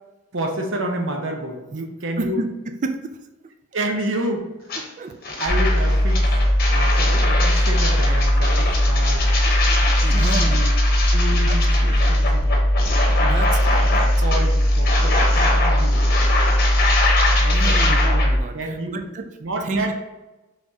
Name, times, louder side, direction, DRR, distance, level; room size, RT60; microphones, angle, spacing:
voice 1, 0.3-2.4 3.7-4.5 5.4-6.3 6.7-9.3 10.1-10.7 11.1-12.6 13.8-16.0 17.4-18.2 18.5-19.0 19.4-19.9, right 1 dB, 65° right, 2 dB, 0.7 m, -29 dB
voice 2, 2.2-3.2 5.0-5.2 10.0-10.7 11.4-12.0 13.2-14.1 17.5-19.3 19.6-19.9, right 3 dB, 35° right, 7 dB, 0.3 m, -30 dB
sound 1, 4.7-4.8 5.2-18.3, left 2 dB, 45° left, 0.9 m, -25 dB
sound 2, 5.5-18.4, equal, ahead, 1.6 m, -19 dB
5.7 x 3.4 x 2.7 m, 1.1 s
head